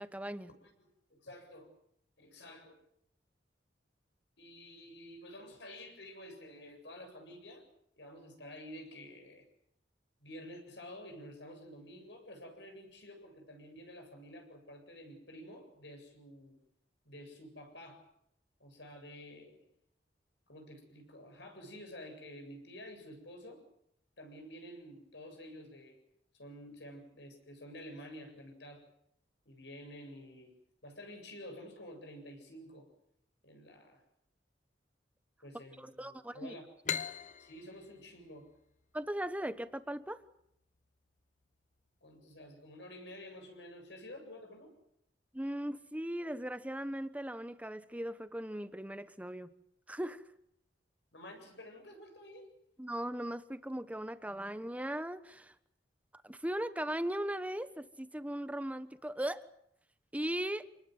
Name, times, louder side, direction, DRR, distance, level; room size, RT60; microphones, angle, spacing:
voice 1, 0.0-0.5 35.8-36.5 38.9-40.2 45.3-49.5 49.9-50.2 52.8-55.5 56.2-59.4 60.1-60.7, right 1 dB, 10° right, 12 dB, 1.1 m, -38 dB
voice 2, 0.6-1.7 2.2-2.8 4.4-7.6 8.0-9.4 10.2-16.6 17.0-18.0 18.6-19.6 20.5-23.6 24.2-26.0 26.3-28.8 29.5-30.5 30.8-32.9 33.4-34.0 35.4-36.6 37.4-38.5 42.0-44.7 51.1-52.5, left 1 dB, 75° left, 4 dB, 7.9 m, -50 dB
sound 1, 36.8-40.3, left 7 dB, 45° left, 1.0 m, -41 dB
27.5 x 20.0 x 8.1 m, 0.74 s
head